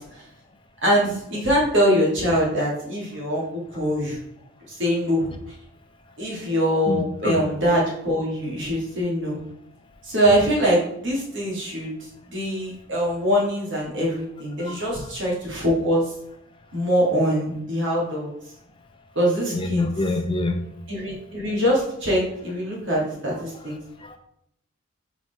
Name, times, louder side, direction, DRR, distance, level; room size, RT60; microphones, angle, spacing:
voice 1, 0.8-4.2 4.7-5.3 6.2-9.4 10.0-11.9 12.3-16.1 16.7-18.3 19.2-19.9 20.9-23.7, equal, 55° right, -4 dB, 2.2 m, -23 dB
voice 2, 6.9-7.4 14.6-14.8 19.5-20.6 24.0-24.2, left 2 dB, 25° left, 5 dB, 0.6 m, -26 dB
4.7 x 4.1 x 5.4 m, 0.74 s
head